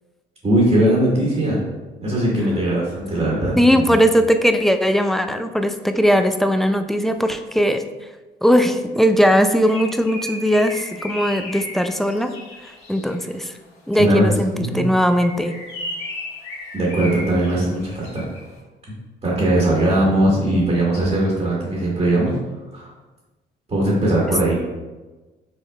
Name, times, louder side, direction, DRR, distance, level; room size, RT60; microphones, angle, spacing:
voice 1, 0.4-1.6 2.0-4.0 14.0-14.3 14.5-14.8 16.7-18.2 19.2-22.3 22.7-22.9 23.7-24.5, right 1 dB, 30° right, -4 dB, 1.4 m, -19 dB
voice 2, 3.6-7.8 8.4-12.3 12.9-13.5 13.9-15.6, equal, ahead, 7 dB, 0.3 m, -18 dB
Bird, 9.2-13.3 15.0-18.5, left 1 dB, 85° left, 1.4 m, -35 dB
6.1 x 3.7 x 2.3 m, 1.2 s
cardioid pair, 90°, 20 cm